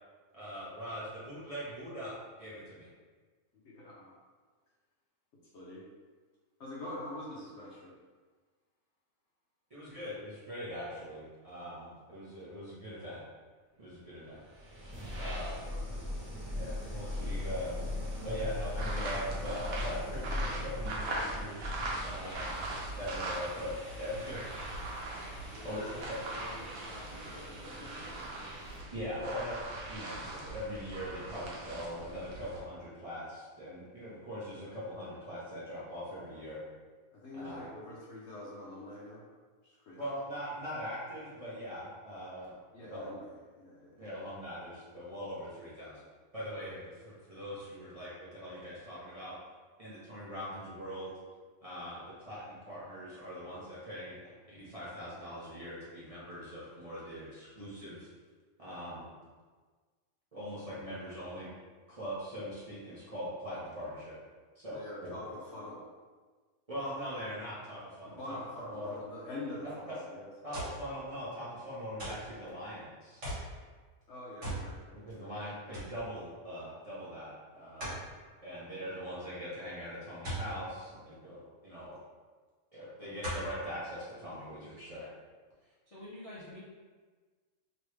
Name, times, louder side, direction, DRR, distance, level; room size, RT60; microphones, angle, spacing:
voice 1, 0.3-2.1 2.4-2.9 9.7-13.2 13.8-14.4 14.8-14.9 15.2-15.5 16.5-17.9 18.2-22.5 23.0-24.4 25.6-26.2 28.9-36.6 37.4-37.7 40.0-42.5 42.8-43.1 44.0-46.0 46.3-49.4 49.8-51.1 51.6-58.1 58.6-59.1 60.3-61.5 61.9-64.2 64.5-65.2 66.7-69.0 69.6-69.9 70.4-73.2 74.9-78.0 78.4-82.0 82.7-85.1, equal, 30° right, -10 dB, 0.7 m, -41 dB
voice 2, 3.6-4.1 5.3-5.9 6.6-7.9 15.7-15.9 25.5-28.8 37.1-39.2 39.6-40.0 42.7-44.0 64.7-65.8 68.1-70.3 74.1-74.9 75.2-75.4, left 1 dB, 60° left, -5 dB, 0.8 m, -45 dB
sound 1, 14.3-28.9, left 1 dB, 20° left, 1.1 m, -40 dB
sound 2, 18.7-23.7 24.0-32.6, right 2 dB, 75° right, 1.2 m, -41 dB
sound 3, 70.5-70.9 72.0-72.3 73.2-73.5 74.4-74.7 75.1-75.2 75.7-76.0 77.8-78.0 80.2-80.5 81.9-82.0 83.2-83.5 84.2-84.3, right 1 dB, 55° right, 1.8 m, -38 dB
voice 3, 85.6-86.6, left 1 dB, 40° left, -9 dB, 0.5 m, -48 dB
3.2 x 3.0 x 3.1 m, 1.4 s
omnidirectional pair, 1.6 m